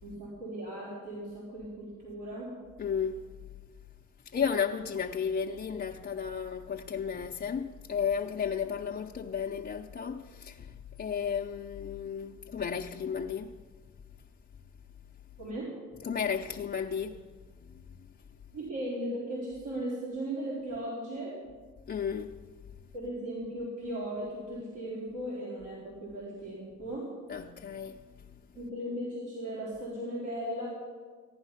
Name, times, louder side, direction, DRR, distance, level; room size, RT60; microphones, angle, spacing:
voice 1, 0.0-2.5 15.4-15.7 18.5-21.4 22.9-27.1 28.5-30.7, right 1 dB, 80° right, 4.2 m, -37 dB
voice 2, 2.8-3.1 4.3-10.7 11.0-13.5 16.0-17.2 21.9-22.3 27.3-28.0, left 7 dB, 35° left, 0.7 m, -33 dB
15.5 x 10.5 x 5.7 m
cardioid pair, 90°, 30 cm